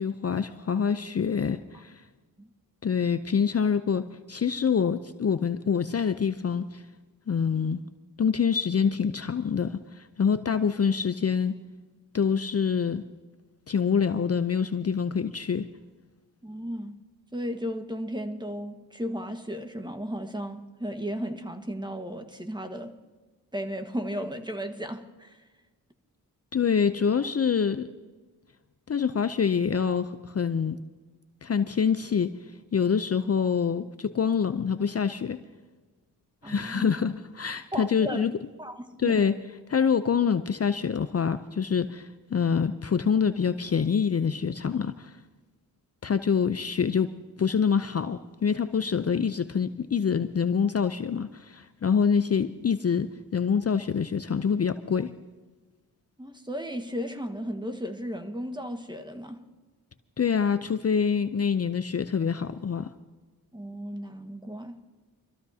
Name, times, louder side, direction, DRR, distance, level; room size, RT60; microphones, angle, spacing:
voice 1, 0.0-2.0 2.8-6.8 7.3-7.8 8.2-11.5 12.1-13.0 13.7-15.7 26.5-27.9 28.9-30.8 31.4-32.3 32.7-35.4 36.4-38.3 39.0-39.3 39.7-45.2 46.0-47.1 47.4-55.1 60.2-62.9, left 6 dB, 40° left, 0.6 m, -26 dB
voice 2, 16.4-16.9 17.3-22.9 23.5-25.5 36.4-36.9 37.7-38.3 38.6-39.3 48.8-48.9 56.2-59.4 63.5-64.9, equal, 10° right, 1.5 m, -35 dB
25.0 x 14.0 x 2.8 m
cardioid pair, 45°, 39 cm